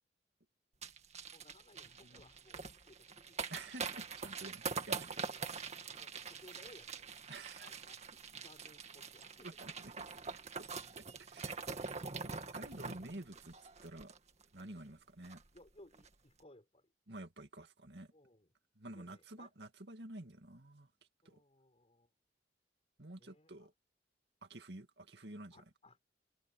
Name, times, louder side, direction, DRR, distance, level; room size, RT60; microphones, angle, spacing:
sound 1, 0.8-14.6 14.9-15.0 15.2-15.6 15.9-16.1, right 5 dB, 40° right, 2.0 m, -44 dB
voice 1, 1.3-3.5 5.3-7.1 7.6-8.0 8.3-9.6 10.2-10.3 14.7-15.0 15.5-16.9 18.1-18.5 18.9-19.5 21.2-22.1 23.2-23.7 25.5-26.0, left 1 dB, 35° left, 4.3 m, -62 dB
voice 2, 3.5-5.3 7.3-7.7 9.4-10.1 10.9-11.7 12.2-13.6 13.8-14.1 14.5-15.4 17.1-18.1 18.8-20.9 21.2-21.4 23.0-23.7 24.4-25.6, right 2 dB, 65° right, 2.4 m, -50 dB
head